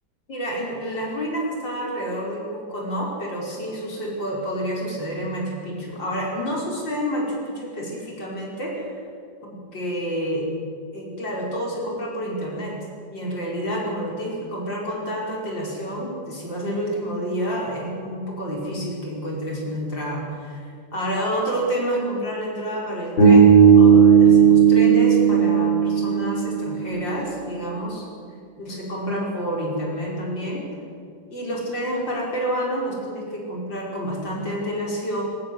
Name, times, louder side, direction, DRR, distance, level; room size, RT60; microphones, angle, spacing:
voice 1, 0.3-8.9 9.4-10.5 10.9-12.8 13.1-28.0 28.6-30.6 31.3-35.2, equal, 70° left, -3 dB, 5.5 m, -29 dB
Bass guitar, 23.2-27.3, right 7 dB, 90° left, 6.4 m, -14 dB
21.0 x 19.0 x 7.8 m, 2.3 s
omnidirectional pair, 2.0 m